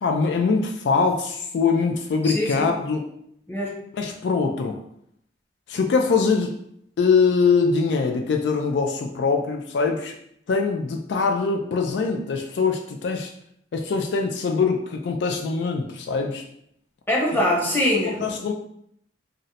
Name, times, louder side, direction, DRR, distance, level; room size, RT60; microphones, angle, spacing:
voice 1, 0.0-3.0 3.9-4.8 5.7-6.5 7.0-10.2 10.5-13.3 13.7-16.5 18.0-18.5, left 4 dB, 70° left, 3 dB, 0.3 m, -23 dB
voice 2, 2.2-2.7 3.5-3.8 17.1-18.3, left 1 dB, 10° left, -4 dB, 0.8 m, -23 dB
2.6 x 2.0 x 4.0 m, 0.72 s
head